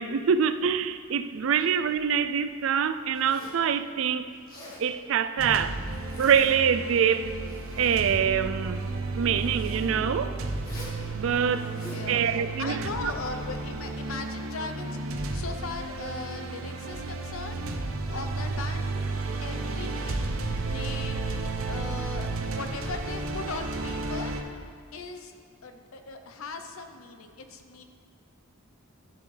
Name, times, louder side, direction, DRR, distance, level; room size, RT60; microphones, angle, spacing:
voice 1, 0.0-4.3 4.8-5.8 6.2-7.3 7.8-8.8 9.2-10.4 11.1-11.7 12.1-13.1, right 7 dB, 65° right, 0.4 m, -25 dB
Zipper (clothing), 3.1-3.7 4.3-4.9 5.9-6.6 7.2-8.2 9.3-9.9 10.6-11.0 11.5-12.1, left 1 dB, 45° left, 1.8 m, -46 dB
sound 1, 5.4-24.4, right 3 dB, 85° right, 0.8 m, -33 dB
sound 2, 8.7-13.9, equal, 65° left, 2.3 m, -51 dB
voice 2, 11.9-17.6 18.1-19.0 19.4-20.3 20.6-21.2 21.6-24.3 24.9-25.3 25.6-27.8, left 4 dB, 85° left, 0.7 m, -39 dB
12.0 x 7.0 x 3.3 m
head